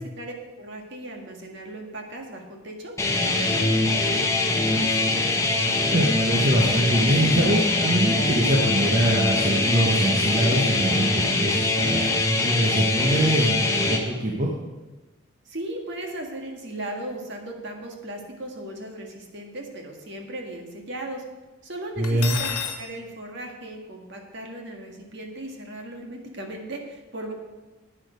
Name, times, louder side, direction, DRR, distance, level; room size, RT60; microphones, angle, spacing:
voice 1, 0.0-5.4 15.5-21.2 21.6-27.3, right 1 dB, 50° right, 2 dB, 1.7 m, -37 dB
sound 1, 3.0-14.0, left 2 dB, 15° left, 1.0 m, -23 dB
voice 2, 5.7-14.5 22.0-22.3, right 1 dB, 35° right, -2 dB, 1.2 m, -23 dB
Cutlery silverware, 22.0-22.8, left 8 dB, 85° left, 1.3 m, -30 dB
10.5 x 8.8 x 5.1 m, 1.1 s
head